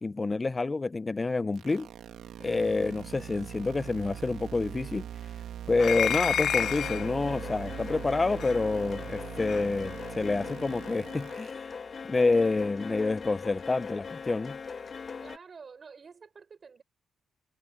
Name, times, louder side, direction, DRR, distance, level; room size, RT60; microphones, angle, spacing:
voice 1, 0.0-1.9 2.4-5.1 5.7-11.6 12.1-14.6, left 3 dB, 30° left, 0.8 m, -28 dB
sound 1, 1.6-11.5, right 10 dB, 70° right, 2.1 m, -42 dB
sound 2, 5.8-7.1 8.4-8.5 9.5-9.6, left 9 dB, 65° left, 0.4 m, -29 dB
sound 3, 6.5-15.4, left 5 dB, 50° left, 1.6 m, -40 dB
voice 2, 15.2-16.8, right 5 dB, 45° right, 7.0 m, -49 dB
supercardioid pair, 50°, 0 cm